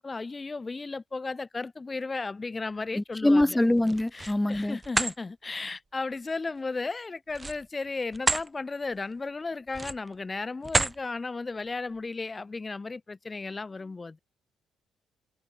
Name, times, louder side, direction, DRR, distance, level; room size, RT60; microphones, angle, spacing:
voice 1, 0.0-3.6 4.1-14.2, left 3 dB, 25° left, 1.3 m, -35 dB
voice 2, 3.0-4.8, left 1 dB, 10° left, 0.7 m, -24 dB
sound 1, 3.8-4.4 4.8-5.2 7.3-8.5 8.9-9.1 9.7-10.1 10.6-11.0, right 3 dB, 20° right, 0.4 m, -29 dB
cardioid pair, 90°, 0 cm